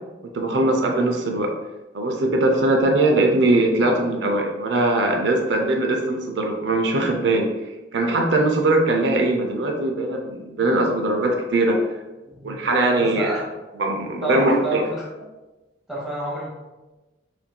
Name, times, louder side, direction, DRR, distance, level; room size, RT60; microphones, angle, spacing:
voice 1, 0.3-1.5 1.9-7.5 7.9-11.8 12.4-13.3 13.8-14.9, right 2 dB, 80° right, 2 dB, 0.5 m, -21 dB
voice 2, 12.2-13.4 14.2-15.2 15.9-16.5, right 1 dB, ahead, -7 dB, 1.2 m, -29 dB
5.7 x 2.6 x 2.2 m, 1.1 s
head